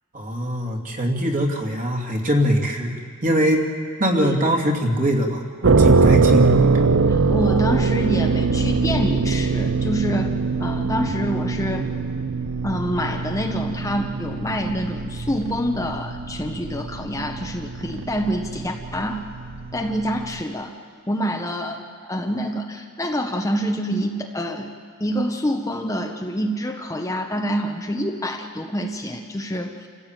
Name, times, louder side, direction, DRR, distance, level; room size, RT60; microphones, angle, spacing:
voice 1, 0.1-3.7 4.0-6.5, equal, 40° right, 1 dB, 2.6 m, -22 dB
sound 1, 5.6-20.4, right 4 dB, 60° right, 0.6 m, -22 dB
voice 2, 7.1-11.9 12.6-19.2 19.7-20.7 21.1-24.7 25.0-29.9, equal, 15° left, 3 dB, 1.0 m, -26 dB
28.5 x 15.0 x 9.0 m, 2.3 s
head